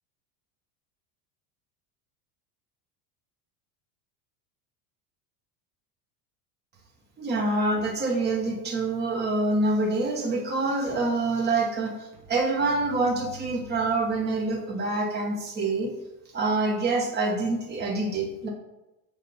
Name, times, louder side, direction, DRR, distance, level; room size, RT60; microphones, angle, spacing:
voice 1, 7.2-15.9 16.3-18.5, right 2 dB, 25° right, -1 dB, 1.2 m, -26 dB
6.7 x 2.8 x 5.5 m, 0.95 s
cardioid pair, 150°, 44 cm